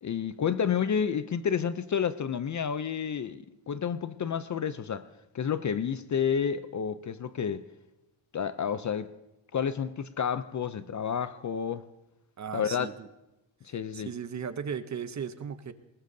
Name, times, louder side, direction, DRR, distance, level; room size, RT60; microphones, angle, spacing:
voice 1, 0.0-5.1 5.3-7.6 8.3-9.1 9.5-11.8 12.5-12.9 13.6-14.1, left 7 dB, 40° left, 0.4 m, -30 dB
voice 2, 12.4-13.1 13.9-15.7, right 7 dB, 40° right, 0.6 m, -36 dB
21.0 x 20.0 x 2.7 m
wide cardioid pair, 175°, 46 cm